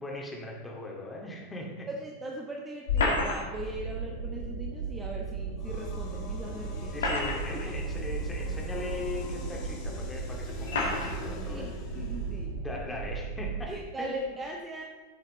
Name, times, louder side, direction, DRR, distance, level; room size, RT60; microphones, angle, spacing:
voice 1, 0.0-1.9 6.9-11.7 12.6-13.7 14.0-14.3, left 2 dB, 10° left, -2 dB, 2.2 m, -39 dB
voice 2, 2.0-7.0 11.5-12.6 13.7-14.8, right 2 dB, 15° right, 0 dB, 1.0 m, -39 dB
sound 1, 2.9-3.7 5.4-5.5 6.7-7.7 8.5-8.6 9.6-9.7 10.7-11.2, left 3 dB, 65° left, 2.1 m, -29 dB
sound 2, 3.6-13.7, right 4 dB, 90° right, 1.2 m, -36 dB
sound 3, 5.6-12.5, left 4 dB, 45° left, 1.9 m, -45 dB
14.0 x 7.4 x 3.2 m, 1.4 s
figure-of-eight pair, 90°, 0 cm